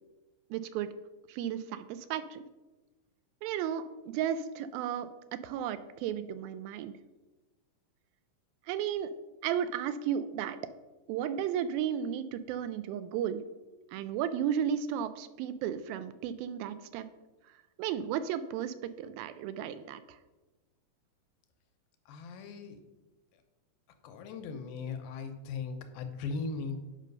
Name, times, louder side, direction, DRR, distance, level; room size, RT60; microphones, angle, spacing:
voice 1, 0.5-0.9 1.3-2.4 3.4-5.1 5.4-6.9 8.7-9.1 9.4-10.6 11.1-13.4 13.9-17.1 17.8-20.2, right 9 dB, 85° right, 12 dB, 2.3 m, -34 dB
voice 2, 22.1-22.8 24.0-26.8, left 4 dB, 80° left, 6 dB, 2.5 m, -38 dB
8.2 x 5.6 x 5.3 m, 1.1 s
omnidirectional pair, 4.3 m